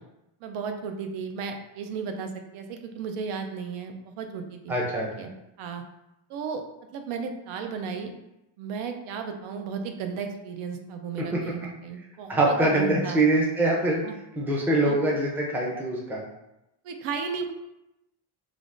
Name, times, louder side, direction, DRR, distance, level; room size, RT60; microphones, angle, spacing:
voice 1, 0.4-4.7 5.1-5.3 5.6-5.8 6.3-6.6 6.9-8.1 8.6-13.2 14.0-14.2 14.8-15.0 16.8-17.5, right 5 dB, 85° right, 5 dB, 0.6 m, -34 dB
voice 2, 4.7-5.1 11.3-11.4 12.3-14.0 14.4-16.2, right 2 dB, 5° right, -3 dB, 0.4 m, -23 dB
3.3 x 2.4 x 2.4 m, 0.90 s
cardioid pair, 135°, 49 cm